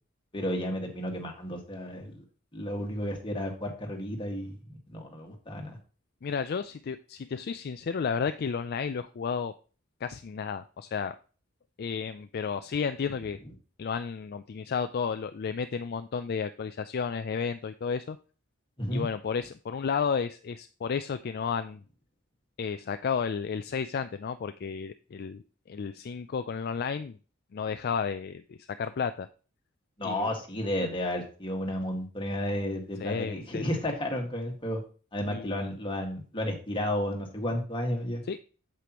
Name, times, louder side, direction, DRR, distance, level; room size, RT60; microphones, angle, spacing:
voice 1, 0.3-2.2 2.5-5.8 18.8-19.0 30.0-34.8 35.1-38.2, left 1 dB, 25° left, 1 dB, 1.8 m, -32 dB
voice 2, 6.2-9.5 10.0-11.1 11.8-13.4 13.8-18.2 18.9-21.8 22.6-27.2 27.5-29.3 30.0-30.3 33.0-33.6 35.3-35.6 38.3-38.4, left 6 dB, 50° left, 10 dB, 0.4 m, -32 dB
8.3 x 7.6 x 3.0 m, 0.37 s
head